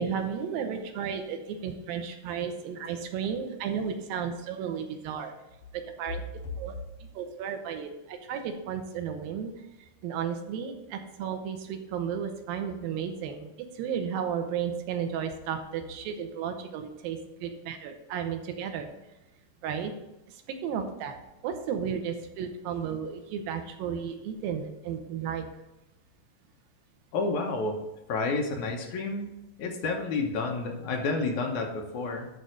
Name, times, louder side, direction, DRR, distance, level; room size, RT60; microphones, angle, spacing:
voice 1, 0.0-5.3 5.7-6.2 6.6-6.7 7.1-9.5 9.8-18.9 19.6-19.9 20.3-21.2 21.4-25.5, right 7 dB, 85° right, 6 dB, 2.8 m, -33 dB
voice 2, 27.1-27.8 28.1-29.3 29.6-32.3, left 3 dB, 65° left, 2 dB, 2.2 m, -30 dB
11.0 x 4.0 x 6.3 m, 0.98 s
omnidirectional pair, 4.0 m